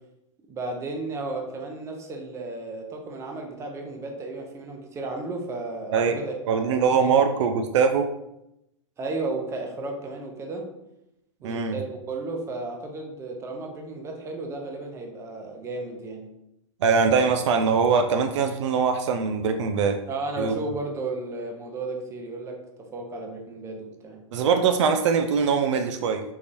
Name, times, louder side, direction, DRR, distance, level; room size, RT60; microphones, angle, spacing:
voice 1, 0.5-7.1 9.0-10.7 11.4-16.3 20.1-24.2, right 3 dB, 15° right, 2 dB, 0.6 m, -34 dB
voice 2, 6.5-8.1 11.4-11.8 16.8-20.0 20.4-20.6 24.3-26.2, right 5 dB, 65° right, 5 dB, 0.4 m, -22 dB
3.8 x 2.9 x 2.6 m, 0.85 s
hypercardioid pair, 125°, 17 cm